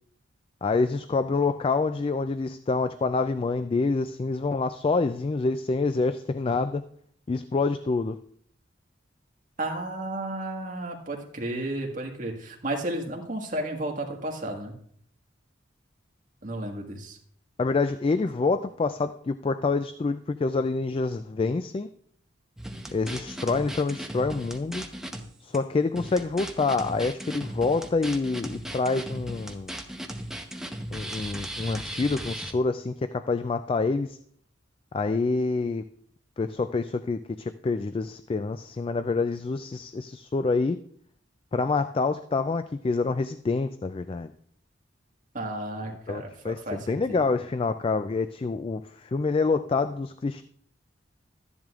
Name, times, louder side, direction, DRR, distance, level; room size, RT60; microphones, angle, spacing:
voice 1, 0.6-6.8 7.3-8.2 17.6-21.9 22.9-24.8 25.4-29.8 30.9-34.2 34.9-35.8 36.4-40.8 41.5-44.3 46.1-50.4, left 3 dB, 30° left, 11 dB, 0.3 m, -27 dB
voice 2, 9.6-14.7 16.4-17.2 45.3-47.3, right 1 dB, 45° right, 1 dB, 1.7 m, -33 dB
sound 1, 22.6-25.2 25.5-25.6 26.0-32.5, right 1 dB, 5° right, 0.8 m, -37 dB
13.5 x 10.5 x 2.4 m, 0.64 s
head